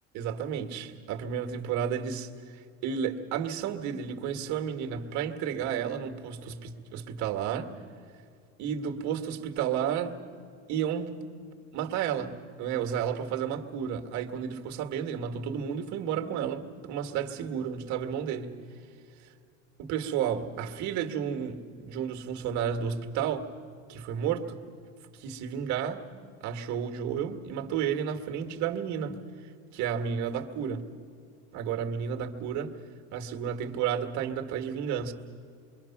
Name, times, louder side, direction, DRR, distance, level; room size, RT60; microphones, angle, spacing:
voice 1, 0.1-7.7 8.6-10.2 10.7-11.2 11.7-18.6 19.8-23.5 23.9-24.6 25.2-26.0 26.4-29.2 29.7-30.9 31.5-32.8 33.1-35.1, right 8 dB, 55° right, 4 dB, 1.8 m, -32 dB
25.5 x 23.5 x 5.9 m, 2.4 s
cardioid pair, 135°, 35 cm